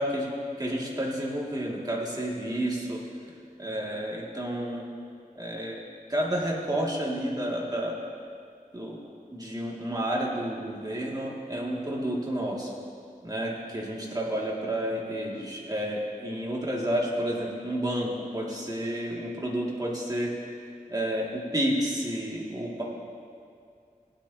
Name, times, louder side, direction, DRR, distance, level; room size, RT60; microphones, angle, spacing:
voice 1, 0.0-3.0 3.6-4.8 5.4-5.8 6.1-7.9 8.7-9.0 9.3-12.7 13.2-20.3 20.9-22.8, right 1 dB, 25° right, -4 dB, 2.3 m, -30 dB
18.5 x 9.7 x 2.9 m, 2.3 s
wide cardioid pair, 55°, 15 cm